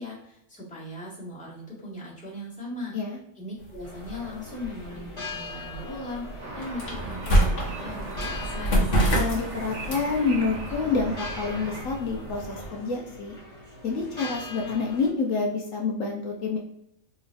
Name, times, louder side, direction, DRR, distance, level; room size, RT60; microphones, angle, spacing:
voice 1, 0.0-2.9 3.3-9.0, left 1 dB, 5° left, -7 dB, 1.1 m, -39 dB
sound 1, 3.6-12.7, right 1 dB, 45° left, 1.1 m, -29 dB
sound 2, 3.8-15.1, left 2 dB, 25° left, 1.0 m, -42 dB
sound 3, 6.4-11.8, right 2 dB, 65° right, 1.1 m, -39 dB
voice 2, 9.1-13.3 13.8-16.6, left 4 dB, 75° left, 0 dB, 1.0 m, -28 dB
3.8 x 2.9 x 2.5 m, 0.78 s
omnidirectional pair, 1.4 m